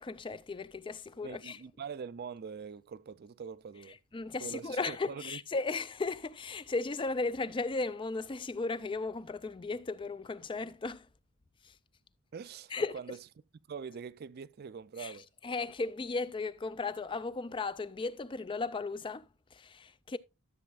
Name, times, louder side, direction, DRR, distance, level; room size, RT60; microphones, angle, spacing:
voice 1, 0.0-1.6 3.9-11.1 11.6-11.8 12.7-13.0 15.0-15.2 15.4-20.2, left 3 dB, 25° left, 0.4 m, -36 dB
voice 2, 1.2-4.0 4.4-5.4 12.3-13.2 13.7-15.3, right 6 dB, 45° right, 0.4 m, -43 dB
13.0 x 7.1 x 2.4 m
head